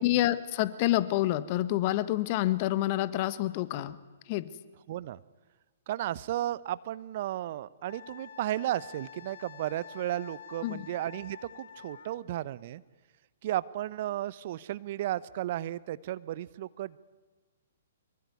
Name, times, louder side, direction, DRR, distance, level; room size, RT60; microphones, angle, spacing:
voice 1, 0.0-4.0 4.3-4.5 10.6-10.9, left 15 dB, 40° left, 15 dB, 1.4 m, -28 dB
voice 2, 4.9-5.2 5.9-12.8 13.4-17.0, right 13 dB, 45° right, 19 dB, 0.8 m, -34 dB
Wind instrument woodwind instrument, 7.9-12.2, left 7 dB, 60° left, 1.9 m, -48 dB
24.5 x 22.5 x 9.5 m, 1.3 s
figure-of-eight pair, 120°, 0 cm